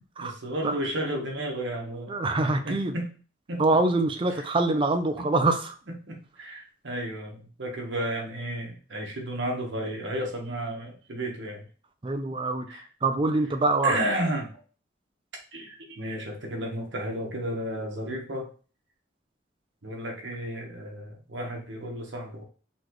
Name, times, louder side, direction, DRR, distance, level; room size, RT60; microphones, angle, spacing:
voice 1, 0.2-2.2 2.6-3.1 3.5-3.6 4.4-4.5 5.2-5.3 5.9-11.6 12.7-12.9 13.8-14.6 15.5-18.5 19.8-22.4, right 1 dB, 70° right, 1 dB, 1.2 m, -33 dB
voice 2, 2.1-2.9 3.6-5.8 12.0-12.7 13.0-14.0, right 2 dB, 25° right, 8 dB, 0.5 m, -24 dB
4.2 x 3.2 x 3.1 m, 0.38 s
head